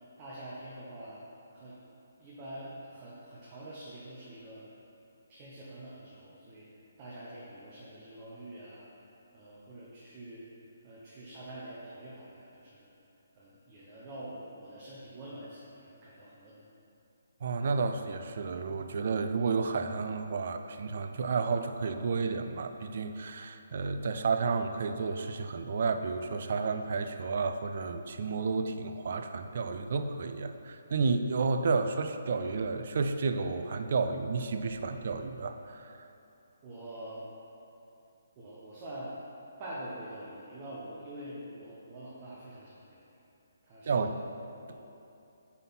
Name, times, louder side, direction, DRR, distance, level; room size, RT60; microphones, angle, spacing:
voice 1, 0.2-1.2 1.5-1.8 2.2-4.7 5.3-6.7 7.0-8.8 9.3-12.9 13.3-16.6 36.6-37.3 38.4-39.1 39.6-43.1 43.6-44.1 44.7-44.8, right 1 dB, 25° right, -7 dB, 0.9 m, -45 dB
voice 2, 17.4-36.0 43.9-44.2 44.7-44.8, right 4 dB, 55° right, 7 dB, 0.4 m, -31 dB
5.4 x 4.1 x 5.7 m, 2.8 s
hypercardioid pair, 165°, 0 cm